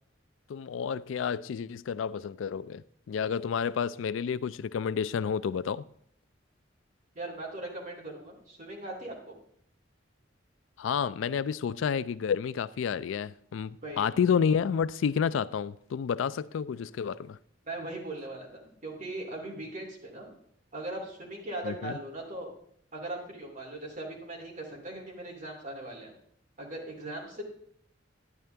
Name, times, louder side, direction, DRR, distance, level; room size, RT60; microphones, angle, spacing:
voice 1, 0.5-5.8 10.8-17.4 21.6-22.0, left 7 dB, 85° left, 0.3 m, -30 dB
voice 2, 7.1-9.3 13.8-14.1 17.6-20.3 20.7-22.5 22.9-26.1 26.6-27.4, right 2 dB, 40° right, 2.8 m, -39 dB
10.5 x 9.6 x 3.4 m
head